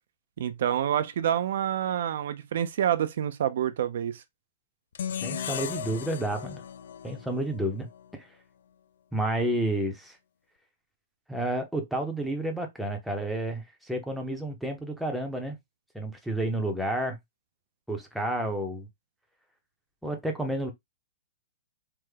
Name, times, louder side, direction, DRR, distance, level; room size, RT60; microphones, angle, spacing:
voice 1, 0.4-4.2, right 10 dB, 60° right, 0.4 m, -27 dB
sound 1, 4.9-8.1, left 8 dB, 75° left, 0.3 m, -36 dB
voice 2, 5.2-6.6 7.0-8.3 9.1-10.2 11.3-15.6 15.9-17.2 17.9-18.9 20.0-20.7, right 1 dB, ahead, 0.6 m, -30 dB
3.4 x 2.1 x 3.2 m
hypercardioid pair, 165°, 0 cm